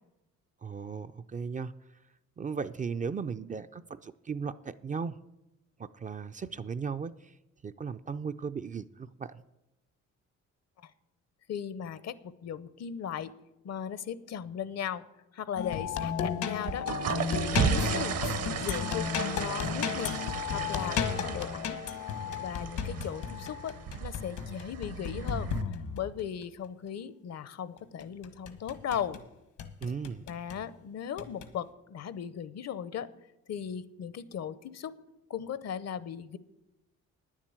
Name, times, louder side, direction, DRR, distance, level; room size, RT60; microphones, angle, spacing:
voice 1, 0.6-1.7 2.4-5.2 5.8-7.3 7.6-9.4 29.8-30.2, right 5 dB, 25° right, 11 dB, 0.4 m, -36 dB
voice 2, 11.5-13.3 13.6-15.0 15.3-16.9 17.3-20.1 20.5-21.8 22.4-25.5 25.9-29.2 30.3-33.1 33.5-34.9 35.3-36.4, left 8 dB, 60° left, 17 dB, 0.7 m, -37 dB
sound 1, 15.6-26.2 28.0-29.2 29.6-30.6 31.2-31.5, left 7 dB, 75° left, 1.3 m, -34 dB
sound 2, 16.5-25.6, right 7 dB, 55° right, 0.8 m, -35 dB
9.7 x 7.4 x 8.7 m, 0.96 s
cardioid pair, 90°, 30 cm